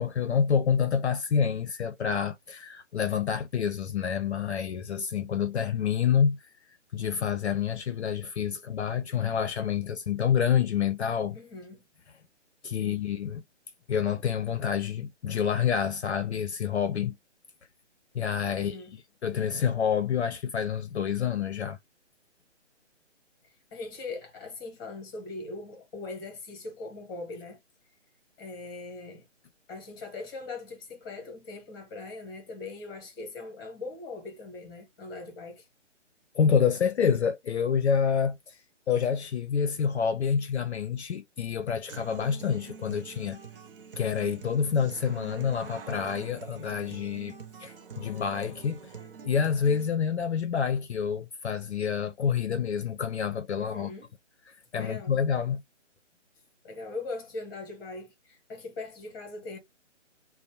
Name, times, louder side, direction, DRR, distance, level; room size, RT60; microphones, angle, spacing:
voice 1, 0.0-6.4 6.9-11.4 12.6-13.4 13.9-17.2 18.1-18.8 19.2-21.8 36.3-38.6 38.9-43.4 44.0-48.9 49.2-53.9 54.7-55.6, left 7 dB, 60° left, 0.5 m, -28 dB
voice 2, 11.3-11.8 12.8-13.0 18.5-18.9 23.7-27.6 28.4-29.2 29.7-35.7 53.6-54.1 54.7-55.1 56.6-59.6, left 3 dB, 15° left, 0.9 m, -40 dB
Human voice / Acoustic guitar, 41.9-49.9, right 6 dB, 50° right, 0.5 m, -46 dB
2.5 x 2.0 x 2.8 m
hypercardioid pair, 150°, 37 cm